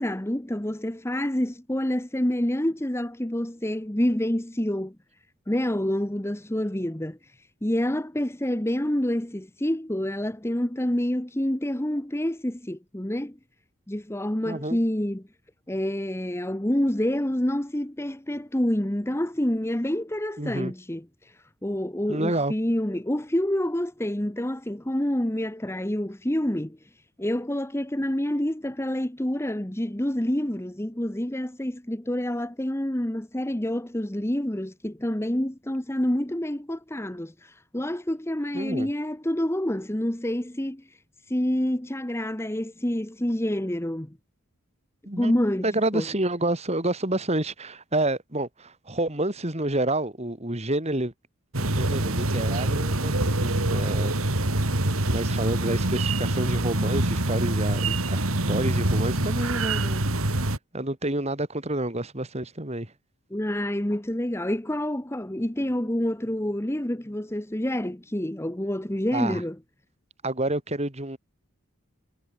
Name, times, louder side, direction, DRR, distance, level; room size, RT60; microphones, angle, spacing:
voice 1, 0.0-5.0 5.5-7.2 7.6-13.4 13.9-15.2 15.7-21.0 21.6-26.8 27.2-40.8 41.3-44.2 45.2-45.7 45.9-46.0 63.3-69.6, left 1 dB, 10° left, 1.1 m, -27 dB
voice 2, 14.5-14.8 20.4-20.7 22.1-22.5 38.5-38.9 45.1-45.3 45.6-51.1 51.6-54.2 55.1-62.9 69.1-69.4 70.2-71.2, right 1 dB, 30° right, 2.8 m, -29 dB
sound 1, 51.5-60.6, right 2 dB, 75° right, 2.8 m, -25 dB
head